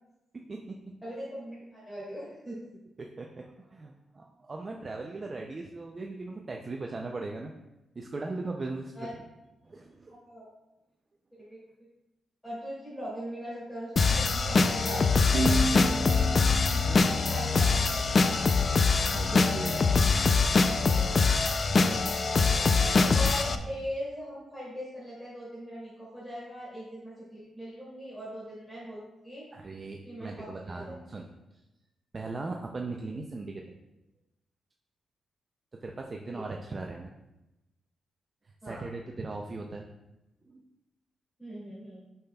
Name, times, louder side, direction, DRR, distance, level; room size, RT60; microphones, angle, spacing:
voice 1, 1.0-2.6 8.9-9.1 10.1-10.5 11.5-11.6 12.4-16.1 16.7-16.8 17.3-17.7 22.8-29.4 30.0-30.9 36.3-36.4 38.6-38.8 41.4-42.0, equal, 10° left, -9 dB, 2.4 m, -40 dB
voice 2, 3.0-7.5 8.0-9.1 9.6-10.2 16.8-17.2 19.1-19.9 29.5-31.3 32.1-33.7 35.8-37.1 38.6-39.9 40.4-40.7, right 3 dB, 30° right, 1 dB, 0.4 m, -38 dB
sound 1, 14.0-23.6, left 4 dB, 40° left, 0.4 m, -24 dB
sound 2, 15.3-18.8, right 2 dB, 80° right, 0.9 m, -34 dB
8.4 x 5.7 x 2.3 m, 0.96 s
wide cardioid pair, 135°, 0 cm